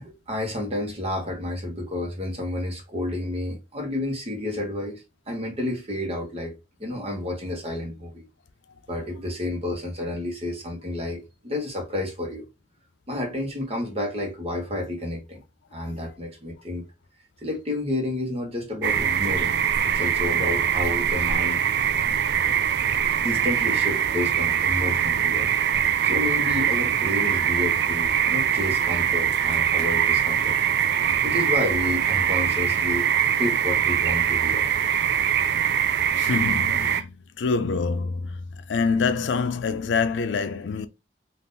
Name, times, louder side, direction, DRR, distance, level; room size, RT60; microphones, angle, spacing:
voice 1, 0.0-6.5 6.8-8.2 8.9-12.5 13.1-15.4 15.7-16.9 17.4-19.6 19.8-21.6 23.2-25.5 26.0-30.6 31.2-33.1 33.4-34.6, left 1 dB, 35° right, 0.9 m, -30 dB
sound 1, 18.8-37.0, right 9 dB, 65° right, 0.3 m, -23 dB
voice 2, 36.2-40.9, left 5 dB, 85° left, 0.4 m, -26 dB
3.5 x 2.5 x 2.6 m
head